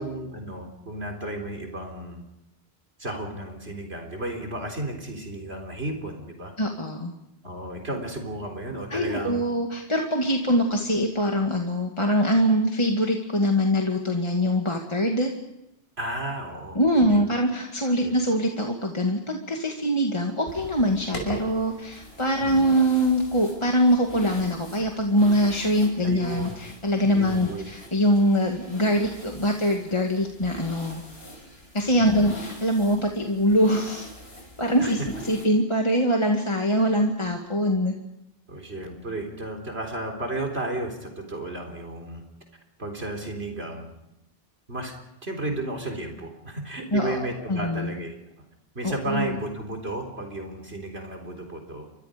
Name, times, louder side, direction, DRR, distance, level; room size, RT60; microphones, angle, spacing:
voice 1, 0.0-2.2 3.0-6.5 7.4-9.4 16.0-16.8 17.1-17.2 17.8-18.1 22.4-22.7 26.0-26.5 27.1-27.6 32.0-32.3 34.8-34.9 38.5-42.2 42.8-43.9 44.7-44.9 45.2-48.1 48.8-51.9, right 1 dB, 75° right, 3 dB, 4.1 m, -33 dB
voice 2, 6.6-7.1 8.9-15.3 16.7-31.0 31.7-34.1 34.6-37.9 46.9-47.2 47.5-47.9 48.8-49.3, equal, 25° left, 1 dB, 2.3 m, -23 dB
sound 1, 20.5-35.5, equal, 80° left, 6.3 m, -42 dB
30.0 x 24.5 x 5.2 m, 0.88 s
omnidirectional pair, 1.1 m